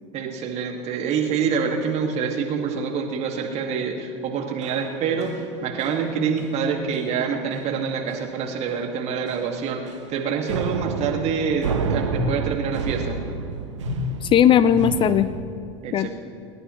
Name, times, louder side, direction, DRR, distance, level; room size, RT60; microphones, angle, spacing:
voice 1, 0.1-13.2 15.8-16.1, right 6 dB, 45° right, 2 dB, 2.1 m, -26 dB
sound 1, 4.6-5.5 5.8-6.1 6.4-6.6 6.9-7.1 7.5-7.6 8.1-8.4 8.7-8.9 9.3-10.2 10.5-15.4, right 6 dB, 80° right, 1.1 m, -31 dB
voice 2, 13.9-15.3 15.9-16.1, left 9 dB, 35° left, 15 dB, 0.5 m, -18 dB
29.0 x 11.0 x 3.2 m, 2.4 s
hypercardioid pair, 85°, 15 cm